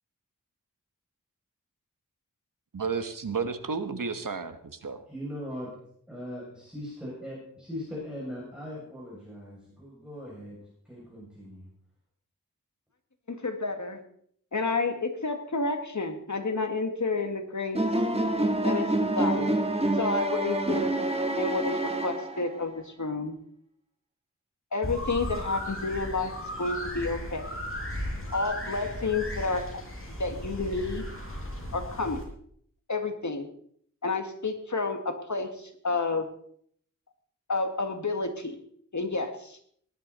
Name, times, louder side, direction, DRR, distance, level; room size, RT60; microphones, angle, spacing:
voice 1, 2.7-5.0, right 5 dB, 75° right, 9 dB, 1.3 m, -32 dB
voice 2, 5.1-5.7 6.1-10.6 10.9-11.7, equal, 5° right, -7 dB, 7.0 m, -40 dB
voice 3, 13.3-14.0 14.5-17.8 18.6-18.9 19.2-19.6 20.0-20.9 21.4-23.4 24.7-27.4 28.3-29.7 30.2-31.0 31.7-32.2 32.9-33.5 34.0-35.5 35.8-36.3 37.5-38.6 38.9-39.6, left 3 dB, 60° left, 5 dB, 2.1 m, -30 dB
sound 1, 17.7-22.6, right 1 dB, 20° right, 1.8 m, -27 dB
sound 2, 24.8-32.2, equal, 40° left, 5.1 m, -36 dB
18.5 x 11.5 x 4.2 m, 0.63 s
wide cardioid pair, 70°, 33 cm